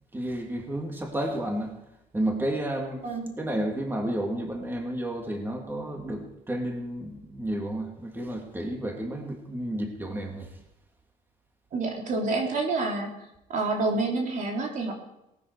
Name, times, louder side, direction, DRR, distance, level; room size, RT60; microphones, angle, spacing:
voice 1, 0.1-1.8 2.1-3.0 3.4-10.5, right 1 dB, 15° right, 1 dB, 2.8 m, -31 dB
voice 2, 11.7-13.1 13.5-14.9, right 3 dB, 60° right, 1 dB, 3.2 m, -28 dB
18.5 x 12.5 x 4.8 m, 0.86 s
cardioid pair, 120°, 15 cm